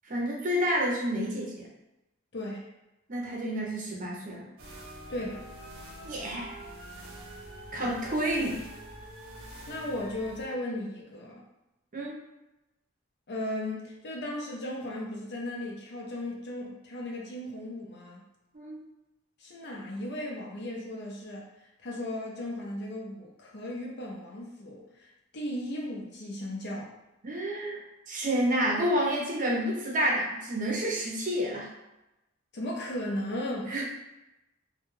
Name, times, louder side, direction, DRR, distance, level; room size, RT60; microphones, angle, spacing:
voice 1, 0.0-1.7 3.1-4.5 6.0-6.6 7.7-8.6 11.9-12.2 18.5-18.8 27.2-31.7 33.7-33.8, equal, 40° right, -2 dB, 0.6 m, -29 dB
voice 2, 2.3-2.7 5.1-5.5 7.7-7.9 9.7-11.4 13.3-18.2 19.4-21.5 21.8-26.9 32.5-33.7, left 1 dB, 55° left, -2 dB, 0.6 m, -36 dB
sound 1, 4.6-10.5, right 1 dB, 90° right, 0.6 m, -45 dB
2.3 x 2.2 x 3.1 m, 0.95 s
head